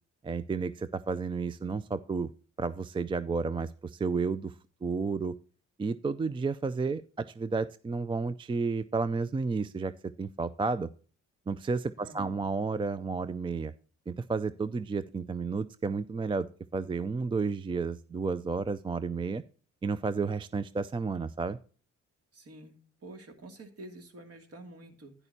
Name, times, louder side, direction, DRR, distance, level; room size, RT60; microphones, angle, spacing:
voice 1, 0.2-2.3 2.6-4.5 4.8-5.4 5.8-9.9 10.2-10.9 11.5-13.7 14.1-19.4 19.8-21.6, right 4 dB, 15° right, 14 dB, 0.4 m, -32 dB
voice 2, 12.0-12.5 22.3-25.1, right 2 dB, 50° right, 5 dB, 2.5 m, -48 dB
10.5 x 10.0 x 2.7 m, 0.41 s
cardioid pair, 90°, 30 cm